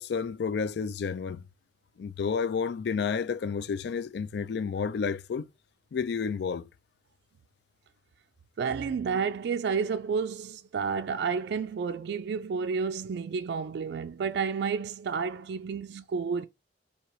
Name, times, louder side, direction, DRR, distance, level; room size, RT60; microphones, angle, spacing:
voice 1, 0.0-1.4 2.0-5.5 5.9-6.7, left 6 dB, 65° left, 0.3 m, -30 dB
voice 2, 8.6-16.5, right 5 dB, 65° right, 0.3 m, -30 dB
3.0 x 2.8 x 4.5 m
head